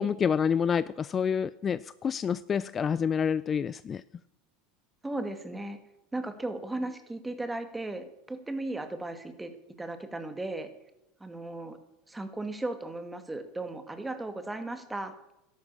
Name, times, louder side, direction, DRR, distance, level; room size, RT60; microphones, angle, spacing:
voice 1, 0.0-4.0, left 7 dB, 30° left, 17 dB, 0.4 m, -28 dB
voice 2, 5.0-5.8 6.1-10.7 11.2-11.8 12.1-15.1, right 2 dB, 10° right, 9 dB, 2.0 m, -36 dB
13.0 x 11.5 x 7.0 m, 0.90 s
hypercardioid pair, 100°, 0 cm